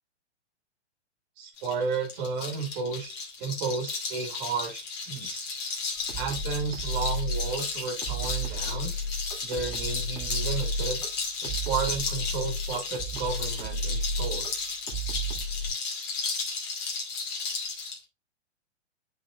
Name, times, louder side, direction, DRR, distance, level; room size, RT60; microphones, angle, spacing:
voice 1, 1.4-5.5 6.2-8.9 9.4-11.0 11.4-14.5, right 5 dB, 40° right, 2 dB, 2.1 m, -33 dB
sound 1, 1.6-18.0, left 4 dB, 30° left, 2.2 m, -34 dB
sound 2, 5.9-15.7, equal, 10° left, 3.2 m, -33 dB
11.0 x 4.1 x 2.5 m, 0.27 s
hypercardioid pair, 125°, 35 cm